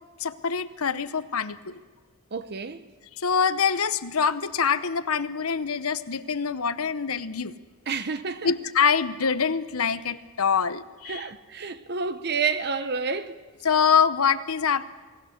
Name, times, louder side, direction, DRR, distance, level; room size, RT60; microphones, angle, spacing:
voice 1, 0.2-1.8 3.2-7.5 8.4-11.3 13.6-14.8, left 6 dB, 85° left, 0.9 m, -25 dB
voice 2, 2.3-2.8 7.9-8.5 11.1-13.4, right 5 dB, 50° right, 0.9 m, -29 dB
28.5 x 19.0 x 6.6 m
head